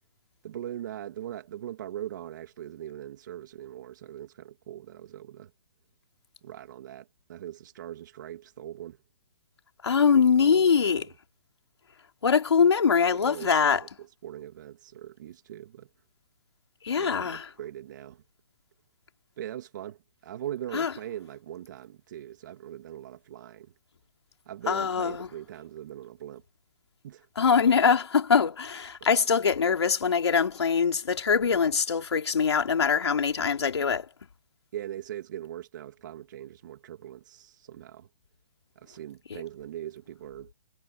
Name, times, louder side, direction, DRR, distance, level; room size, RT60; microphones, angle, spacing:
voice 1, 0.4-5.5 6.4-9.0 10.1-10.6 10.9-11.1 13.1-15.9 16.9-18.2 19.4-23.7 24.5-26.4 27.0-27.3 29.0-29.2 34.7-38.1 38.8-40.5, right 11 dB, 45° right, 2.6 m, -41 dB
voice 2, 9.8-11.1 12.2-13.8 16.8-17.5 20.7-20.9 24.7-25.3 27.4-34.1, left 6 dB, 85° left, 3.2 m, -23 dB
hypercardioid pair, 160°, 14 cm